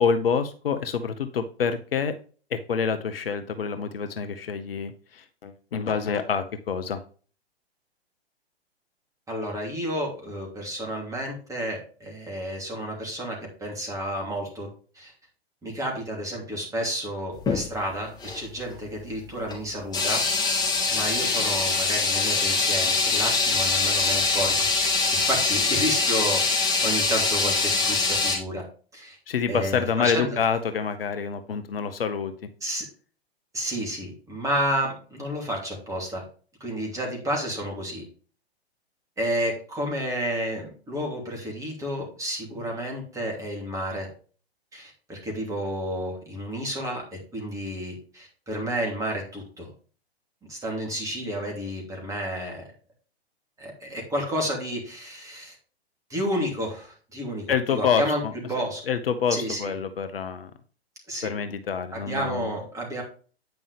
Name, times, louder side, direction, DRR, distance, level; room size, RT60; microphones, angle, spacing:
voice 1, 0.0-2.1 2.5-7.0 29.3-32.3 57.5-58.3 58.9-60.5 61.2-62.5, left 6 dB, 60° left, 9 dB, 0.9 m, -27 dB
voice 2, 9.3-14.7 14.9-15.1 15.6-20.2 20.9-24.7 25.1-28.6 28.9-29.2 29.5-30.4 32.6-32.8 33.5-36.2 36.6-38.0 39.2-44.1 44.7-49.7 50.5-52.6 53.6-55.5 56.1-58.2 58.5-58.8 59.3-59.7 61.1-61.3 61.9-63.0, equal, 10° right, -1 dB, 2.9 m, -31 dB
sound 1, 17.4-17.6 18.2-18.4 19.5-19.6 19.9-28.4, left 4 dB, 15° left, 2.5 m, -23 dB
9.3 x 5.3 x 3.4 m, 0.40 s
figure-of-eight pair, 115°, 32 cm